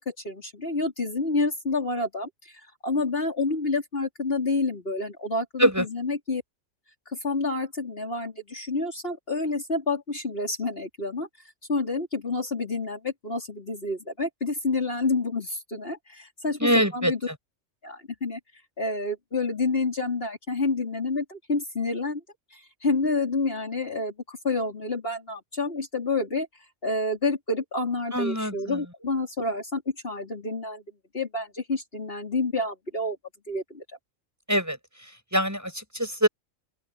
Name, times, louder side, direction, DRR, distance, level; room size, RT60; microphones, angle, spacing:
voice 1, 0.0-2.3 2.8-6.4 7.2-11.3 11.7-17.2 17.8-18.4 18.8-22.2 22.8-26.5 26.8-30.8 31.1-33.2 33.5-33.8, left 3 dB, 45° left, 4.2 m, -28 dB
voice 2, 16.6-17.4 28.1-28.9 34.5-36.3, equal, 15° right, 6.1 m, -25 dB
open air
omnidirectional pair, 1.3 m